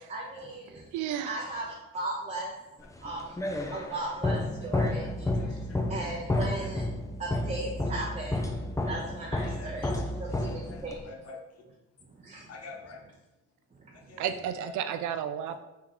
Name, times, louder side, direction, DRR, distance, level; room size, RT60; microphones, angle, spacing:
voice 1, 0.0-0.9 1.2-1.7 1.9-2.5 3.0-5.6 5.9-6.9 7.2-9.9 10.2-11.1 12.1-12.5 13.8-14.2, right 2 dB, 25° right, -3 dB, 0.7 m, -37 dB
voice 2, 0.9-1.4 14.2-15.6, right 9 dB, 75° right, 9 dB, 0.5 m, -32 dB
sound 1, 3.0-11.1, left 1 dB, 10° left, 0.4 m, -31 dB
voice 3, 4.8-6.7 9.0-9.1 9.4-10.0 10.4-11.6 12.5-13.0 13.9-14.2 14.6-14.7, left 3 dB, 55° left, 0 dB, 0.8 m, -49 dB
3.7 x 2.9 x 3.8 m, 0.98 s
cardioid pair, 90°, 30 cm